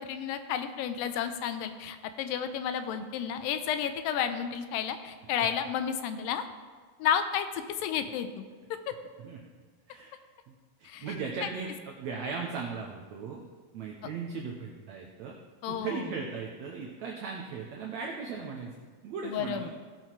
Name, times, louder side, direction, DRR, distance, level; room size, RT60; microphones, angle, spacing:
voice 1, 0.0-6.4 7.0-8.5 10.8-11.1 15.6-16.1 19.2-19.7, left 8 dB, 90° left, 9 dB, 2.4 m, -31 dB
voice 2, 10.8-13.4 13.7-15.4 15.7-18.7 19.0-19.7, right 5 dB, 70° right, -1 dB, 1.9 m, -37 dB
17.0 x 6.2 x 4.6 m, 1.5 s
omnidirectional pair, 4.0 m